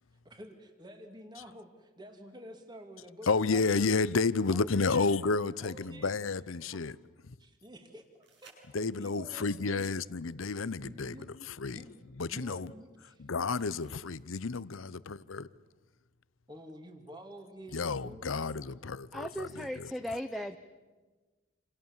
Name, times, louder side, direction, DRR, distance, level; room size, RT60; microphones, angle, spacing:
voice 1, 0.2-3.9 4.5-5.2 5.6-6.2 6.7-6.9 7.4-8.6 9.0-9.8 10.8-11.3 11.6-11.9 12.3-13.3 16.5-18.5, equal, 20° right, 2.6 m, -49 dB
voice 2, 3.3-7.0 7.3-7.4 8.7-11.1 11.4-11.8 12.2-12.7 13.2-15.5 17.7-19.9, left 4 dB, 85° left, 0.8 m, -31 dB
sound 1, 3.5-4.7 8.2-9.2 11.1-11.2 13.5-14.5 17.5-17.6, right 3 dB, 60° right, 7.5 m, -61 dB
voice 3, 19.1-20.6, equal, ahead, 0.8 m, -37 dB
28.0 x 26.5 x 7.4 m
head